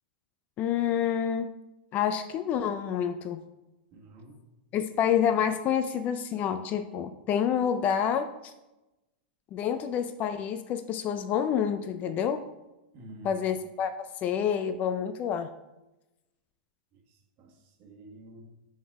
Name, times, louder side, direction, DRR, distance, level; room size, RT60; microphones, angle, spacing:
voice 1, 0.6-1.5 1.9-3.4 4.7-8.5 9.5-12.4 13.2-15.5, left 8 dB, 30° left, 10 dB, 0.3 m, -28 dB
voice 2, 3.9-4.5 12.9-13.4 16.9-18.4, right 1 dB, 40° right, 1 dB, 1.3 m, -49 dB
6.2 x 4.0 x 4.6 m, 1.0 s
supercardioid pair, 140°, 5 cm